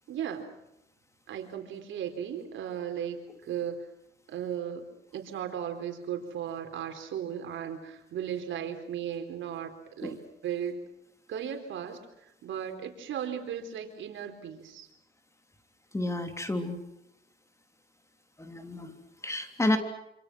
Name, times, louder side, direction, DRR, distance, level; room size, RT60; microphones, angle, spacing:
voice 1, 0.1-0.5 1.3-3.9 4.3-4.8 5.1-10.8 11.3-14.9, right 9 dB, 75° right, 6 dB, 4.2 m, -36 dB
voice 2, 15.9-16.8 18.4-19.8, left 1 dB, 15° left, 6 dB, 3.2 m, -30 dB
27.5 x 27.0 x 6.3 m, 0.82 s
cardioid pair, 90°, 20 cm